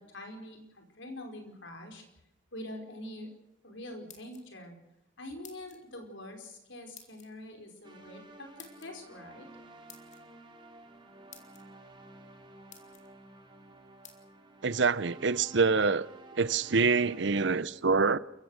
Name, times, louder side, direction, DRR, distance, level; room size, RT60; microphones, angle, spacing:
voice 1, 0.0-2.0 2.5-3.3 3.6-4.8 5.2-9.5, left 1 dB, 65° left, 4.8 m, -45 dB
sound 1, 3.9-4.7 5.4-5.8 6.9-7.3 8.6-8.9 9.9-10.2 10.9-11.0 11.3-11.6 12.2-12.3 12.7-13.1 14.0-14.2, left 8 dB, 35° left, 2.8 m, -52 dB
sound 2, 7.8-17.2, right 2 dB, 25° right, 2.7 m, -53 dB
voice 2, 14.6-16.1 16.4-18.2, right 4 dB, 60° right, 0.7 m, -26 dB
29.0 x 15.5 x 6.5 m
head